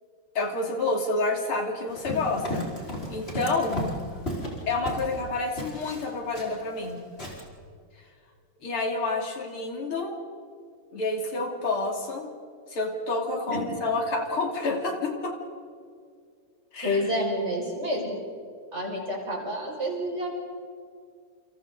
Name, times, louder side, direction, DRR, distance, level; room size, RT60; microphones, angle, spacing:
voice 1, 0.4-2.7 3.1-4.2 4.7-7.0 8.6-10.2 10.9-12.3 12.7-15.4 16.7-17.0, left 3 dB, 85° left, 2 dB, 3.7 m, -29 dB
Run, 1.9-5.2 5.6-6.9 7.2-7.4, equal, 25° left, 5.0 m, -34 dB
voice 2, 16.8-18.2 18.7-20.3, equal, 30° right, -2 dB, 6.1 m, -29 dB
29.0 x 28.5 x 4.0 m, 2.2 s
omnidirectional pair, 2.3 m